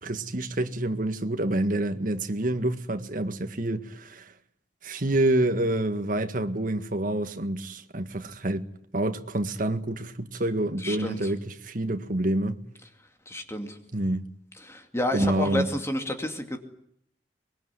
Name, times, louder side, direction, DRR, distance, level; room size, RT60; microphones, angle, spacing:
voice 1, 0.0-4.3 4.8-8.7 8.9-12.6 13.9-14.3 15.1-15.7, right 1 dB, 50° right, 1.8 m, -27 dB
voice 2, 10.8-11.2 13.3-13.8 14.6-16.6, left 1 dB, 15° left, 2.5 m, -30 dB
24.0 x 22.5 x 9.8 m
head